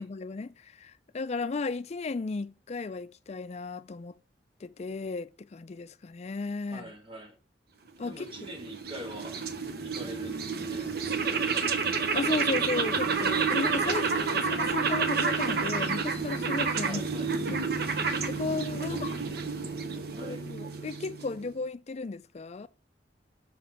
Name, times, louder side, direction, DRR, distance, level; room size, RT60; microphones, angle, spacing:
voice 1, 0.0-4.1 4.6-6.9 8.0-8.5 12.1-17.1 17.5-17.7 17.9-19.1 20.2-22.7, left 3 dB, 40° left, 0.4 m, -35 dB
voice 2, 6.7-7.4 8.0-9.4 9.8-11.7 16.8-17.3 18.7-20.5, equal, 30° right, 1.2 m, -45 dB
sound 1, 8.1-21.5, right 5 dB, 60° right, 0.8 m, -30 dB
6.0 x 3.6 x 5.7 m
head